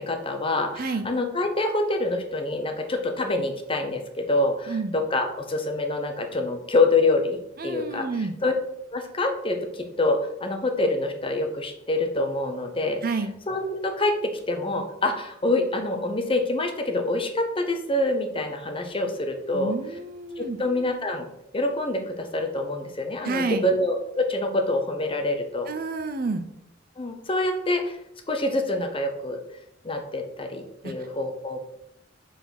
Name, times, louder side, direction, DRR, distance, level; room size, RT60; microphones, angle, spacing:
voice 1, 0.0-7.4 7.6-8.1 8.4-8.5 8.9-13.0 13.5-14.2 14.5-19.8 20.4-21.3 21.5-25.7 27.0-28.0 28.3-29.4 29.8-31.6, left 2 dB, 25° left, 5 dB, 0.9 m, -26 dB
voice 2, 0.8-1.1 4.7-4.9 7.6-8.4 13.0-13.3 19.5-20.6 23.2-23.7 25.7-26.5 30.8-30.9, right 3 dB, 45° right, 9 dB, 0.6 m, -29 dB
5.8 x 4.2 x 5.9 m, 0.77 s
head